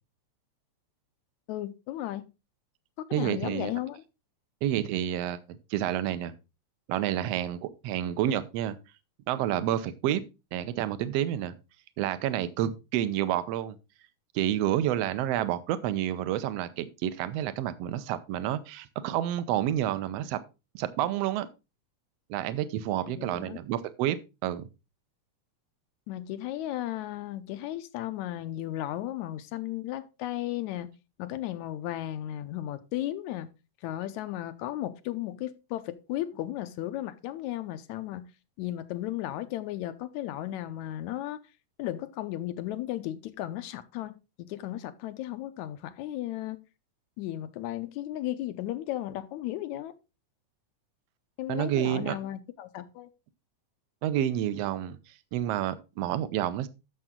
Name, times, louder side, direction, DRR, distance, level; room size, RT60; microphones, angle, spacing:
voice 1, 1.5-2.2 3.1-4.0 23.0-23.6 26.1-30.9 31.2-33.5 33.8-38.3 38.6-41.4 41.8-46.6 47.2-49.9 51.4-53.1, left 13 dB, 80° left, 2.1 m, -35 dB
voice 2, 3.1-3.7 4.6-6.3 6.9-8.8 9.3-10.2 10.5-11.5 12.0-13.8 14.3-20.4 20.7-21.5 22.3-24.7 51.5-52.2 54.0-55.0 55.3-56.7, right 11 dB, 70° right, 1.7 m, -29 dB
11.0 x 7.0 x 3.7 m
omnidirectional pair, 3.3 m